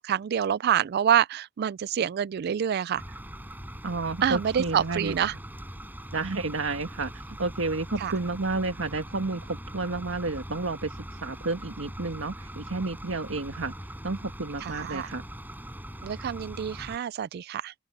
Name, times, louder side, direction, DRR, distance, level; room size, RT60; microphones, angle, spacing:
voice 1, 0.0-3.0 4.2-5.3 8.0-8.1 14.6-15.1 16.0-17.7, right 9 dB, 55° right, 0.3 m, -27 dB
sound 1, 3.0-17.0, equal, 10° right, 6.1 m, -41 dB
voice 2, 3.8-5.2 6.1-13.7 14.0-15.2, right 3 dB, 80° right, 1.6 m, -31 dB
open air
head